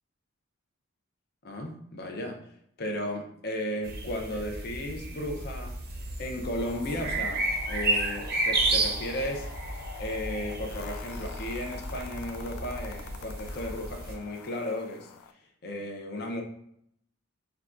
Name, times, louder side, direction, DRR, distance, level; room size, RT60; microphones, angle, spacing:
voice 1, 1.4-5.8 6.2-9.5 10.0-16.4, left 1 dB, 45° left, 2 dB, 0.6 m, -35 dB
sound 1, 3.8-14.1, right 2 dB, 45° right, 0.6 m, -32 dB
sound 2, 6.6-15.3, left 6 dB, 80° left, 0.3 m, -46 dB
5.6 x 2.3 x 2.5 m, 0.71 s
head